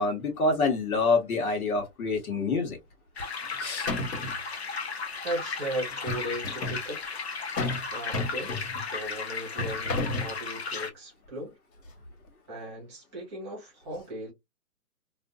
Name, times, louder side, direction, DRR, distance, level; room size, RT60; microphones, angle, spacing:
voice 1, 0.0-2.8 3.6-3.9, left 3 dB, 60° left, 1.2 m, -26 dB
sound 1, 3.2-3.6 3.9-4.4 5.9-6.8 7.6-7.9 8.1-8.9 9.6-10.3, left 2 dB, 80° left, 1.4 m, -32 dB
sound 2, 3.2-10.9, left 4 dB, 40° left, 0.5 m, -35 dB
voice 2, 5.2-7.0 7.9-8.5 8.8-11.5 12.5-14.3, right 1 dB, 15° right, 1.0 m, -37 dB
2.5 x 2.5 x 2.3 m
hypercardioid pair, 160°, 49 cm